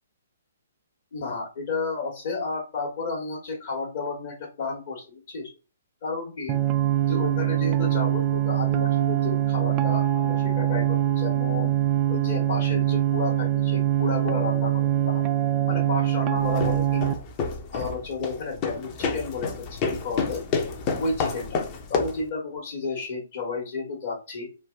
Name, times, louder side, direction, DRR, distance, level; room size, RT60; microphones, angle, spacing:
voice 1, 1.1-5.5 6.0-6.6 7.1-11.7 12.1-15.2 15.7-17.2 17.7-20.5 21.0-21.6 21.9-24.5, left 3 dB, 55° left, -5 dB, 1.3 m, -32 dB
sound 1, 6.5-17.1, right 12 dB, 25° right, 0.3 m, -23 dB
sound 2, 16.4-22.3, left 4 dB, 30° left, 0.6 m, -29 dB
3.2 x 2.2 x 3.5 m, 0.32 s
figure-of-eight pair, 130°, 0 cm